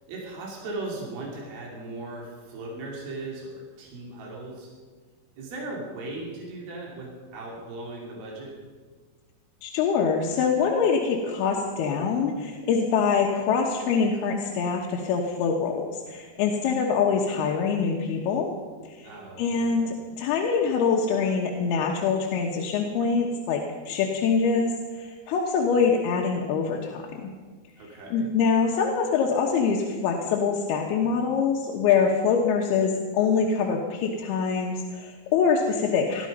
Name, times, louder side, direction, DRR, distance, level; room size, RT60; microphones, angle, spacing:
voice 1, 0.1-4.7 5.4-8.5 19.0-19.8 27.8-28.3, right 2 dB, 75° right, -3 dB, 4.6 m, -38 dB
voice 2, 9.6-18.5 18.9-19.1 19.4-27.3 28.1-36.3, left 5 dB, 90° left, 0 dB, 3.2 m, -24 dB
20.5 x 13.0 x 5.4 m, 1.5 s
omnidirectional pair, 4.4 m